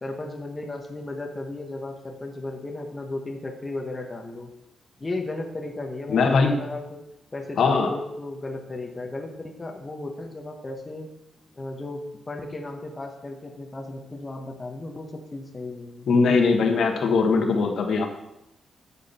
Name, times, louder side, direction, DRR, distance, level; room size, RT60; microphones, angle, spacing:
voice 1, 0.0-4.5 5.0-7.0 7.3-11.1 11.5-12.0 12.3-16.1, left 2 dB, 20° left, 2 dB, 1.1 m, -35 dB
voice 2, 6.1-6.5 7.6-7.9 16.1-18.1, left 4 dB, 65° left, 3 dB, 1.4 m, -20 dB
11.0 x 7.3 x 4.3 m, 0.86 s
wide cardioid pair, 140°, 0 cm